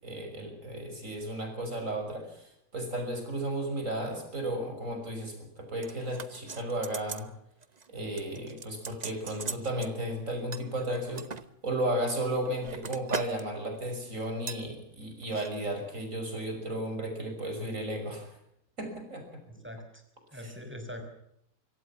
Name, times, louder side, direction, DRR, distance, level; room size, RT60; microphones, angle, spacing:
voice 1, 0.0-7.3 7.9-11.3 11.6-18.3 18.8-19.2 19.5-19.6 20.4-20.5, right 1 dB, 55° right, 5 dB, 6.4 m, -34 dB
sound 1, 5.8-7.3 7.6-7.9 8.2-9.9 10.5-11.4 12.1-13.4 13.7-14.0 14.5-14.7 15.2-15.5 15.8-15.9, right 5 dB, 30° right, 0.9 m, -40 dB
voice 2, 19.5-20.0 20.3-21.0, left 1 dB, 5° right, 4 dB, 5.4 m, -42 dB
24.5 x 17.0 x 7.3 m, 0.74 s
omnidirectional pair, 1.6 m